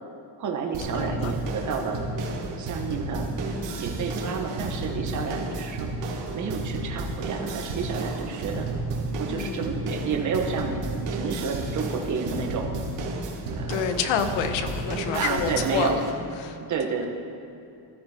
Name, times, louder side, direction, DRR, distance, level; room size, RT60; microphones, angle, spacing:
voice 1, 0.4-2.0 2.6-3.3 3.6-5.9 6.3-8.6 9.2-12.7 13.5-14.0 15.1-16.0 16.7-17.1, right 5 dB, 40° right, 2 dB, 1.5 m, -30 dB
sound 1, 0.7-16.1, right 2 dB, 75° right, 2.7 m, -32 dB
voice 2, 0.9-1.3 9.2-9.7 13.7-16.0 16.4-16.6, left 7 dB, 85° left, 8 dB, 1.3 m, -28 dB
15.5 x 13.5 x 4.6 m, 2.7 s
cardioid pair, 165°, 45 cm